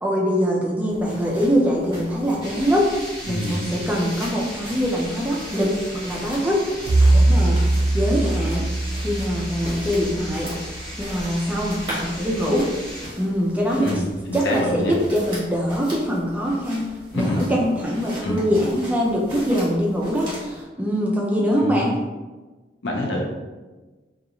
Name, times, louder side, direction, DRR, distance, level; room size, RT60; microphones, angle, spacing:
voice 1, 0.0-2.9 3.3-6.6 7.1-7.6 7.9-8.7 9.0-10.5 11.0-12.7 13.2-13.9 14.3-22.0, equal, 10° right, -3 dB, 0.3 m, -23 dB
sound 1, 0.9-20.6, equal, 25° right, 1.1 m, -40 dB
sound 2, 2.4-13.1, equal, 20° left, 0.7 m, -36 dB
voice 2, 3.2-3.7 13.8-14.9 17.1-17.5 18.2-18.5 21.6-21.9 22.8-23.2, left 1 dB, 85° left, -1 dB, 0.6 m, -26 dB
Bowed string instrument, 6.9-11.1, right 2 dB, 85° right, 0.5 m, -21 dB
2.4 x 2.3 x 2.9 m, 1.2 s
head